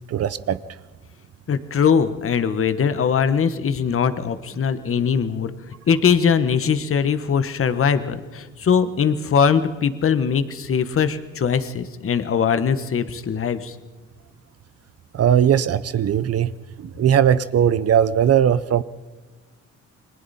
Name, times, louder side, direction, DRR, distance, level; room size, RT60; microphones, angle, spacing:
voice 1, 0.1-0.6 15.1-16.5 16.8-18.8, right 9 dB, 55° right, 15 dB, 0.7 m, -19 dB
voice 2, 1.5-5.5 5.9-13.7, left 7 dB, 45° left, 11 dB, 1.4 m, -21 dB
29.5 x 21.5 x 4.3 m, 1.3 s
cardioid pair, 90°, 30 cm